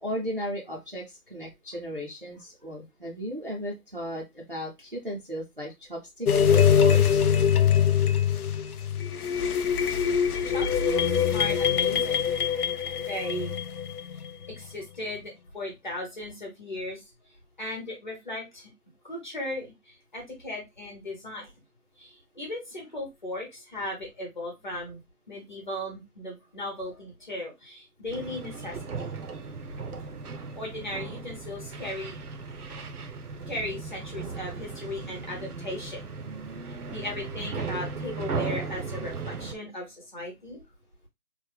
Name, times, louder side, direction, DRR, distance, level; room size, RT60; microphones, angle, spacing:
voice 1, 0.0-7.3, equal, 40° right, -2 dB, 0.5 m, -36 dB
sound 1, 6.3-14.3, left 8 dB, 75° left, 0.5 m, -23 dB
voice 2, 10.0-12.3 13.1-13.6 14.1-14.2 14.5-17.0 17.6-18.7 19.0-21.5 22.0-29.1 30.5-32.2 33.5-36.0 36.6-40.6, left 1 dB, 30° left, -1 dB, 1.0 m, -37 dB
sound 2, 28.1-39.5, right 4 dB, 70° right, 0.7 m, -37 dB
3.2 x 2.0 x 3.4 m, 0.21 s
hypercardioid pair, 175°, 46 cm